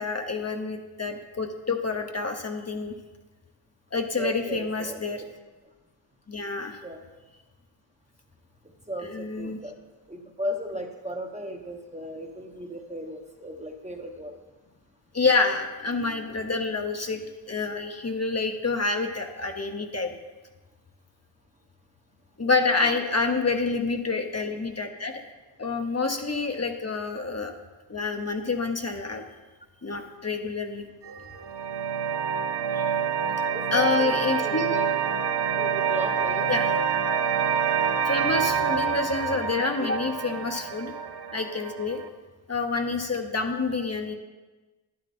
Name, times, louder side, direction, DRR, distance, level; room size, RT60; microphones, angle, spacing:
voice 1, 0.0-2.9 3.9-5.2 6.3-6.8 9.0-9.6 15.1-20.1 22.4-25.1 25.6-27.6 27.9-29.2 29.8-30.9 32.7-32.8 33.7-34.8 36.5-36.7 38.0-40.9 41.3-42.0 42.5-44.2, left 3 dB, 35° left, 4 dB, 0.9 m, -27 dB
voice 2, 4.1-5.0 6.8-7.0 8.9-9.8 10.1-14.4 22.4-22.5 22.8-23.0 33.5-35.2 35.5-36.5, equal, 15° right, 3 dB, 1.0 m, -36 dB
sound 1, 31.0-42.1, right 7 dB, 60° right, 0.7 m, -27 dB
11.5 x 11.0 x 4.3 m, 1.2 s
wide cardioid pair, 135°, 46 cm